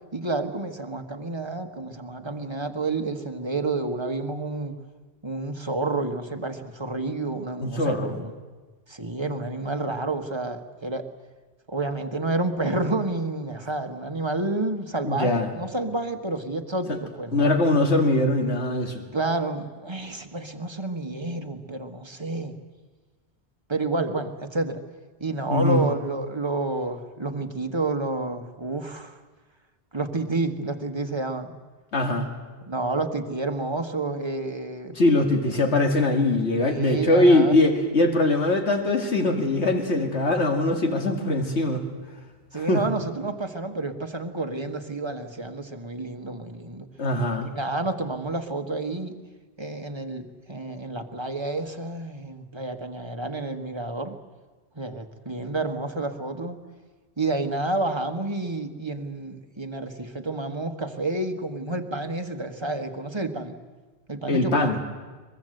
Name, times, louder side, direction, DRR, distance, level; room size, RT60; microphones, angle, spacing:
voice 1, 0.1-4.8 5.2-8.3 8.9-11.1 11.7-17.5 19.1-22.6 23.7-24.8 25.2-29.2 29.9-31.6 32.7-35.0 36.6-37.6 42.5-46.9 47.4-49.1 49.6-54.2 54.7-56.6 57.2-63.5 64.1-64.8, right 2 dB, 25° right, 6 dB, 1.4 m, -29 dB
voice 2, 7.6-8.1 15.0-15.5 17.3-19.0 25.5-25.9 31.9-32.3 35.0-41.8 42.5-42.8 47.0-47.5 64.3-64.8, left 2 dB, 90° left, 4 dB, 2.3 m, -22 dB
23.0 x 21.5 x 7.9 m, 1.3 s
omnidirectional pair, 1.1 m